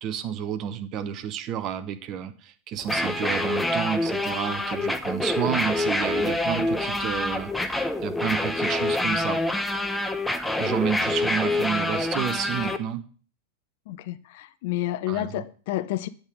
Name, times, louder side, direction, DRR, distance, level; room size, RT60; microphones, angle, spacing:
voice 1, 0.0-7.7 8.0-9.4 10.6-13.0 15.1-15.4, right 9 dB, 35° right, 0.7 m, -30 dB
sound 1, 2.8-12.8, left 2 dB, 5° left, 0.6 m, -26 dB
voice 2, 13.9-16.1, left 14 dB, 50° left, 0.4 m, -30 dB
8.3 x 3.7 x 6.3 m
figure-of-eight pair, 90°, 0 cm